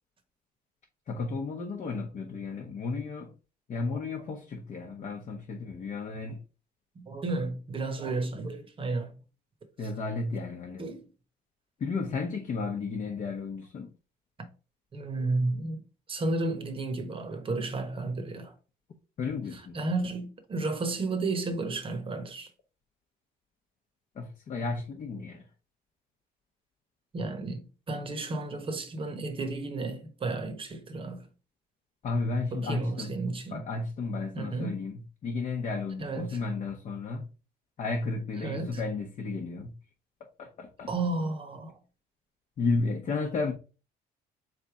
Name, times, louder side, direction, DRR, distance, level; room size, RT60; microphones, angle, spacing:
voice 1, 1.1-3.3 3.7-6.4 9.8-10.9 11.8-13.9 19.2-19.8 24.1-25.4 32.0-33.2 33.5-37.3 37.8-39.7 40.4-40.9 42.6-43.5, left 3 dB, 45° left, 0.8 m, -33 dB
voice 2, 7.0-9.1 10.8-11.1 14.4-14.5 14.9-15.8 16.1-18.5 19.7-22.5 27.1-31.3 32.5-33.6 34.3-34.8 36.0-36.4 38.4-38.8 40.9-41.8, right 3 dB, 30° right, 1.0 m, -32 dB
4.1 x 3.3 x 3.6 m
cardioid pair, 110°, 17 cm